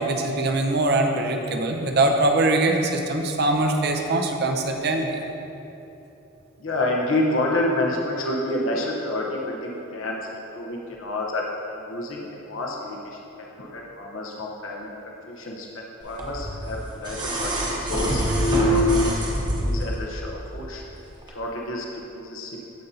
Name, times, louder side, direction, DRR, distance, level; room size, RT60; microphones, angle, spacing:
voice 1, 0.0-5.2, right 2 dB, 50° right, 3 dB, 0.6 m, -22 dB
voice 2, 6.6-14.9 15.3-18.2 18.6-20.9 21.3-21.9 22.1-22.6, left 1 dB, 70° left, -2 dB, 1.0 m, -29 dB
sound 1, 16.2-20.0 21.2-21.3, equal, 20° right, 1.0 m, -23 dB
14.5 x 5.2 x 2.8 m, 3.0 s
head